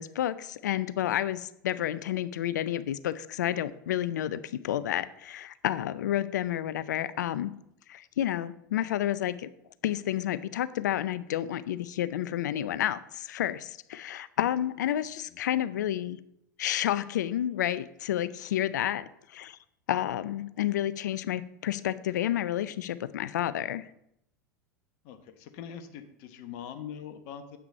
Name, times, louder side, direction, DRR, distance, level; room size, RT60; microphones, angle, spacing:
voice 1, 0.0-7.5 7.9-9.5 9.8-16.2 16.6-19.6 19.9-23.9, left 12 dB, 70° left, 15 dB, 0.5 m, -30 dB
voice 2, 25.0-27.6, left 8 dB, 55° left, 7 dB, 1.0 m, -43 dB
8.3 x 6.0 x 5.5 m, 0.77 s
figure-of-eight pair, 85°, 10 cm